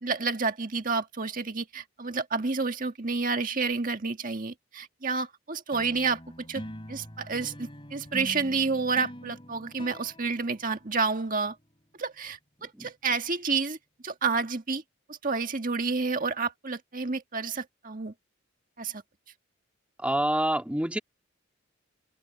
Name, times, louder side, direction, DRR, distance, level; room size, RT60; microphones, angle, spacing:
voice 1, 0.0-6.6 6.9-11.5 12.0-13.8 14.0-14.8 15.1-18.1 18.8-19.0, right 4 dB, 40° right, 1.8 m, -30 dB
sound 1, 5.7-11.3, equal, 25° left, 3.8 m, -44 dB
voice 2, 12.6-12.9 20.0-21.0, right 1 dB, 5° right, 2.5 m, -27 dB
open air
head